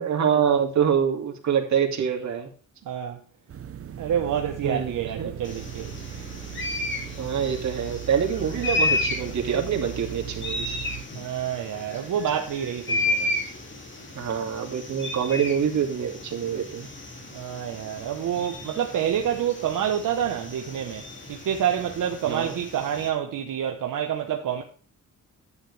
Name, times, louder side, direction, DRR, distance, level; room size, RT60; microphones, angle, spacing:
voice 1, 0.0-2.5 4.6-5.9 7.2-10.8 14.1-16.9 22.2-22.6, right 7 dB, 60° right, 2.5 m, -26 dB
voice 2, 2.9-3.2 4.0-5.9 11.1-13.3 17.3-24.6, right 9 dB, 85° right, 1.1 m, -28 dB
sound 1, 3.5-11.0, right 11 dB, 45° right, 0.9 m, -38 dB
sound 2, 5.4-23.1, left 2 dB, 35° left, 2.6 m, -33 dB
11.0 x 9.3 x 3.3 m
wide cardioid pair, 160°, 31 cm